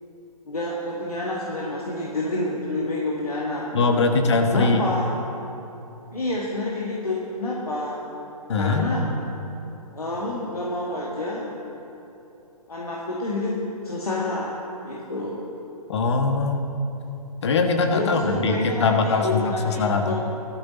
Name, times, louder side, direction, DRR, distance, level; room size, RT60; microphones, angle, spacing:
voice 1, 0.5-4.1 4.5-5.1 6.1-8.0 8.6-9.0 9.9-11.5 12.7-14.5 14.8-15.4 17.9-20.1, left 2 dB, 70° left, -4 dB, 2.1 m, -28 dB
voice 2, 3.7-4.8 8.5-8.9 15.9-16.7 17.4-20.1, left 4 dB, 45° left, 5 dB, 1.3 m, -22 dB
16.5 x 13.0 x 4.2 m, 2.9 s
figure-of-eight pair, 130°, 20 cm